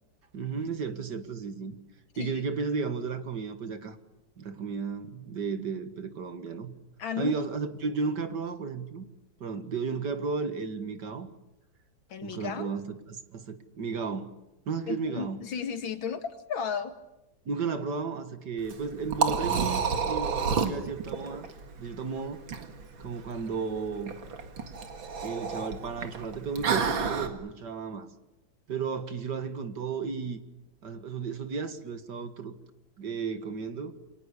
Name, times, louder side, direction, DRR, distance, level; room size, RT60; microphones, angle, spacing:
voice 1, 0.3-1.8 2.2-4.0 4.4-6.7 7.2-9.0 9.4-11.3 12.2-12.8 13.1-14.3 14.7-15.4 17.5-21.5 21.8-22.4 23.0-24.1 25.2-28.1 28.7-30.4 30.8-32.6 33.0-33.9, right 5 dB, 60° right, 10 dB, 2.3 m, -33 dB
voice 2, 7.0-7.4 12.1-12.7 14.9-16.9, left 7 dB, 90° left, 8 dB, 2.7 m, -34 dB
Liquid, 18.6-27.3, right 5 dB, 80° right, 2.8 m, -31 dB
29.0 x 24.5 x 8.4 m, 0.94 s
omnidirectional pair, 2.1 m